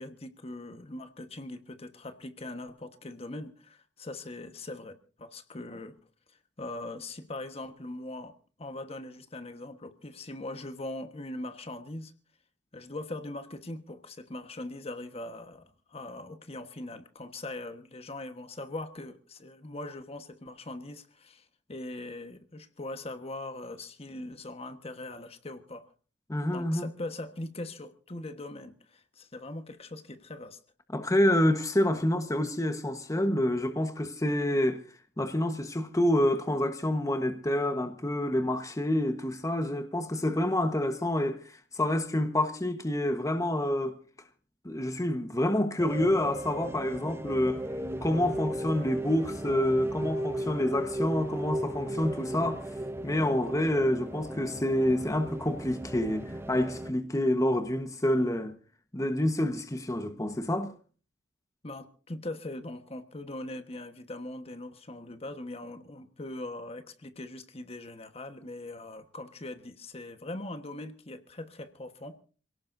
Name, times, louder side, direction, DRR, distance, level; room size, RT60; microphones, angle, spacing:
voice 1, 0.0-6.0 6.3-12.1 12.7-25.9 26.5-30.6 61.6-72.2, left 2 dB, 35° left, 1.4 m, -41 dB
voice 2, 26.3-26.9 30.9-34.8 35.2-44.0 44.6-47.6 48.0-52.7 53.0-58.6 58.9-60.7, left 1 dB, 20° left, 1.2 m, -28 dB
sound 1, 45.8-56.9, right 1 dB, 15° right, 0.8 m, -36 dB
27.5 x 17.5 x 2.7 m
head